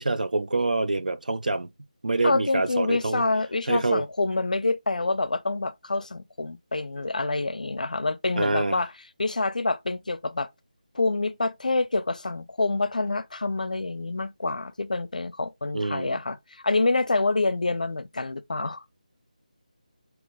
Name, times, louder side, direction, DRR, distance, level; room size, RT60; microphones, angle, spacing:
voice 1, 0.0-1.7 2.0-3.2 3.7-4.0 8.4-8.8 15.7-16.2, right 2 dB, 80° right, 0.5 m, -26 dB
voice 2, 2.2-8.9 9.2-10.5 10.9-16.4 16.6-18.8, left 3 dB, 70° left, 0.5 m, -27 dB
3.0 x 2.8 x 3.9 m
figure-of-eight pair, 175°, 4 cm